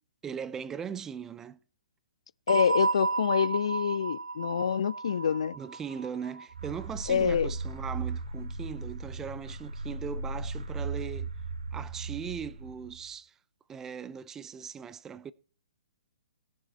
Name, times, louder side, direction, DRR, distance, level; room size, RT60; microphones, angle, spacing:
voice 1, 0.2-1.6 5.5-11.3 11.7-13.3 13.7-15.3, right 7 dB, 10° right, 0.5 m, -39 dB
voice 2, 2.5-5.6 7.1-7.5, left 7 dB, 55° left, 0.5 m, -26 dB
sound 1, 2.5-7.1, right 3 dB, 80° right, 0.6 m, -32 dB
sound 2, 6.5-13.1, right 3 dB, 55° right, 2.7 m, -37 dB
18.5 x 7.3 x 4.4 m
figure-of-eight pair, 125°, 4 cm